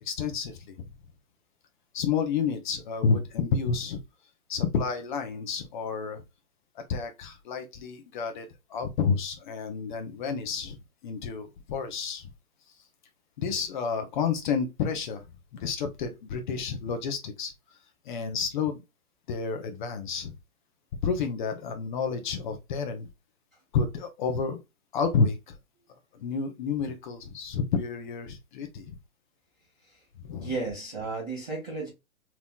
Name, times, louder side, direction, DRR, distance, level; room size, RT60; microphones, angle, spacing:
voice 1, 0.0-0.8 1.9-4.0 4.5-6.2 6.8-12.3 13.4-15.2 15.5-17.5 18.0-18.8 19.3-20.3 21.0-23.1 23.7-24.6 24.9-25.6 26.2-29.0 30.2-30.5, left 5 dB, 35° left, 0.7 m, -30 dB
voice 2, 30.4-31.9, right 3 dB, 5° right, 0.3 m, -34 dB
3.4 x 3.0 x 2.2 m
hypercardioid pair, 130°, 44 cm